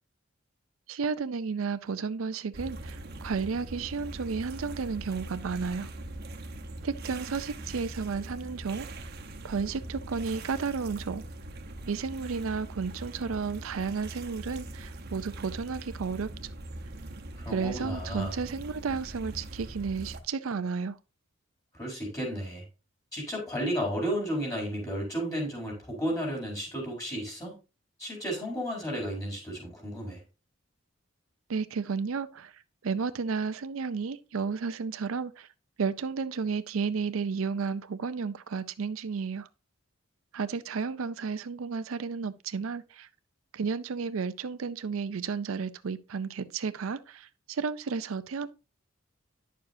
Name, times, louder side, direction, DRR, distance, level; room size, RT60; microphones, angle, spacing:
voice 1, 0.9-5.9 6.8-9.1 9.4-11.2 11.9-16.3 17.5-21.0 31.5-32.5 32.8-35.5 35.8-39.5 40.3-43.1 43.5-48.5, right 5 dB, 85° right, 0.5 m, -32 dB
sound 1, 2.5-20.2, right 1 dB, 50° right, 1.0 m, -42 dB
voice 2, 17.4-18.4 21.8-22.6 23.1-27.6 28.0-30.2, equal, 15° left, 4.3 m, -33 dB
10.0 x 6.7 x 2.7 m
head